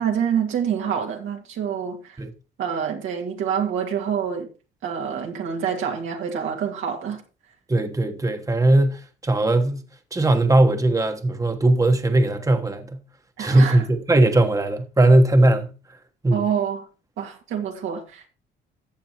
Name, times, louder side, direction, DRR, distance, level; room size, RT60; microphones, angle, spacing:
voice 1, 0.0-2.0 2.6-4.5 4.8-7.2 13.4-13.9 16.3-16.8 17.2-18.3, right 8 dB, 85° right, 2.2 m, -26 dB
voice 2, 7.7-9.8 10.1-13.0 13.4-15.7 16.2-16.5, right 2 dB, 15° right, 1.2 m, -19 dB
14.0 x 8.4 x 3.0 m
cardioid pair, 90°, 20 cm